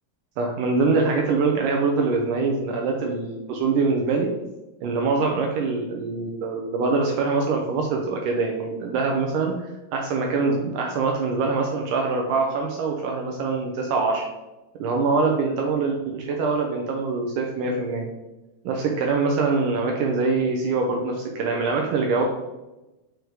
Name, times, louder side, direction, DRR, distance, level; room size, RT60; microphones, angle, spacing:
voice 1, 0.4-4.3 4.8-14.3 14.8-16.0 16.3-18.1 18.6-22.2, right 4 dB, 80° right, 1 dB, 1.9 m, -24 dB
6.4 x 4.9 x 4.7 m, 1.0 s
omnidirectional pair, 4.6 m